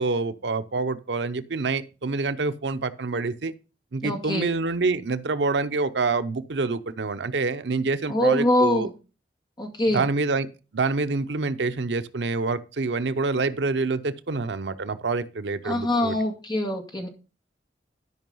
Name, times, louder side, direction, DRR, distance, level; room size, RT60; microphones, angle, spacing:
voice 1, 0.0-3.5 3.9-8.9 9.9-10.5 10.7-16.2, right 3 dB, 80° right, 0.7 m, -26 dB
voice 2, 4.0-4.5 8.1-8.9 9.6-10.0 15.6-17.1, left 1 dB, 25° left, 2.0 m, -24 dB
12.5 x 5.4 x 5.4 m
head